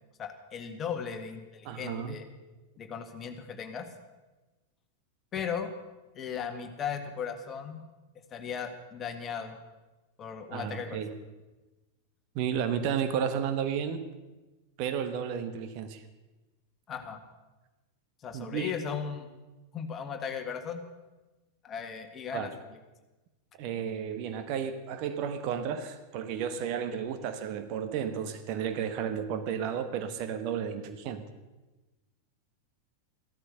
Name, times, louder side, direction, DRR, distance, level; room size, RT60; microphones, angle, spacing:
voice 1, 0.2-2.2 2.8-3.9 5.3-5.7 6.1-7.8 8.3-9.6 10.2-11.0 16.9-17.2 18.2-19.3 19.7-20.8 21.6-22.5, left 7 dB, 25° left, 7 dB, 1.8 m, -36 dB
voice 2, 1.6-2.1 10.5-11.1 12.3-14.0 14.8-16.0 18.3-18.7 22.3-22.5 23.6-31.2, right 8 dB, 45° right, 9 dB, 1.3 m, -32 dB
15.0 x 13.0 x 6.7 m, 1.1 s
figure-of-eight pair, 90°, 0 cm